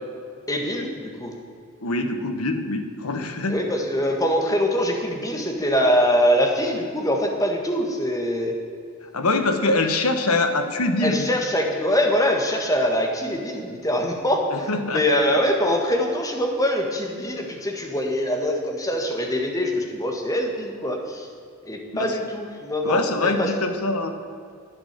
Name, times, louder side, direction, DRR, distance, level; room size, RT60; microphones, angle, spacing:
voice 1, 0.5-1.3 3.5-8.6 11.0-21.3 21.7-23.5, equal, 15° left, 1 dB, 1.5 m, -23 dB
voice 2, 1.8-3.6 9.1-11.3 14.5-15.0 21.9-22.2 22.8-24.1, left 2 dB, 90° left, 6 dB, 1.2 m, -24 dB
11.0 x 8.7 x 6.8 m, 2.3 s
head